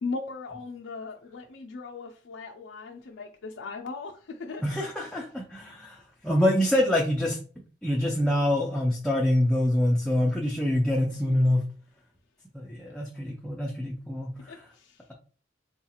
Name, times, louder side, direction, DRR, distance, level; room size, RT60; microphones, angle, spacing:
voice 1, 0.0-4.8 14.5-15.0, left 4 dB, 75° left, 0.4 m, -38 dB
voice 2, 4.6-6.0 6.2-7.4 7.8-11.6 12.5-14.5, left 1 dB, 5° left, 0.3 m, -25 dB
3.7 x 2.3 x 2.8 m
head